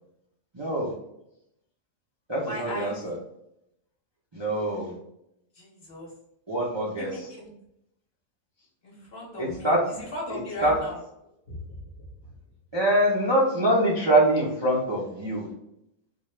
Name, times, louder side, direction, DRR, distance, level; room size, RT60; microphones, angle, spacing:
voice 1, 0.5-0.9 2.3-3.2 4.3-4.9 6.5-7.3 9.4-9.8 10.3-10.7 12.7-15.5, right 1 dB, 25° right, -5 dB, 0.6 m, -24 dB
voice 2, 2.5-3.0 5.6-6.1 7.0-7.5 8.8-11.0 11.5-11.6, left 1 dB, 50° left, -2 dB, 1.2 m, -37 dB
4.4 x 2.3 x 3.2 m, 0.79 s
omnidirectional pair, 1.5 m